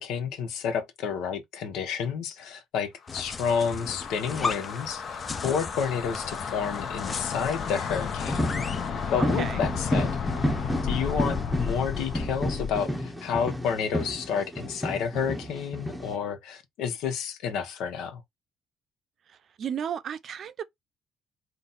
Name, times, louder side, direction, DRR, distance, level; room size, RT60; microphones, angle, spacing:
voice 1, 0.0-8.8 9.1-10.1 10.8-18.2, left 7 dB, 85° left, 0.9 m, -30 dB
sound 1, 3.1-12.8, left 7 dB, 60° left, 0.8 m, -33 dB
sound 2, 3.1-8.9, left 4 dB, 35° left, 0.5 m, -37 dB
sound 3, 8.3-16.1, equal, ahead, 0.7 m, -31 dB
voice 2, 9.2-9.6 19.6-20.6, right 8 dB, 55° right, 0.5 m, -33 dB
3.9 x 2.3 x 4.1 m
cardioid pair, 95°, 0 cm